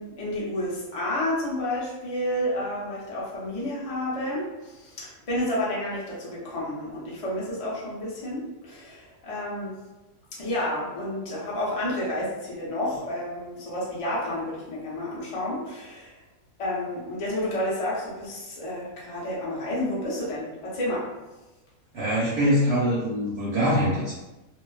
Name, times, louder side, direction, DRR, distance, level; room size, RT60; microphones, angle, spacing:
voice 1, 0.0-9.7 10.4-16.2 16.6-21.1, left 1 dB, 40° left, -6 dB, 0.5 m, -30 dB
voice 2, 21.9-24.1, equal, 60° right, -7 dB, 0.7 m, -23 dB
2.3 x 2.2 x 2.4 m, 1.1 s
omnidirectional pair, 1.5 m